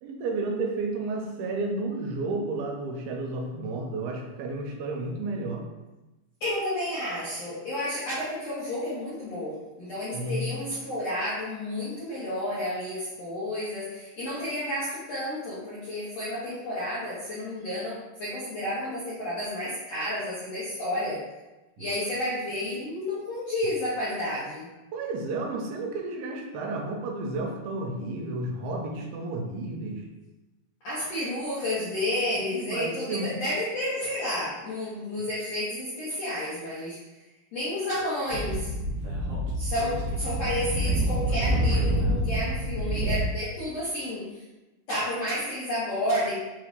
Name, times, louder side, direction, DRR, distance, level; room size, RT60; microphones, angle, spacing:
voice 1, 0.0-5.7 10.1-10.5 21.8-21.9 24.9-30.1 32.4-33.4, right 2 dB, 85° right, 2 dB, 2.4 m, -32 dB
voice 2, 6.4-21.2 21.8-24.7 30.8-37.0 37.5-38.7 39.5-44.2 44.9-46.4, left 1 dB, 70° left, -10 dB, 1.5 m, -31 dB
Speech / Wind, 38.3-43.2, right 1 dB, 65° right, 1.6 m, -27 dB
5.8 x 3.1 x 2.5 m, 1.1 s
omnidirectional pair, 4.4 m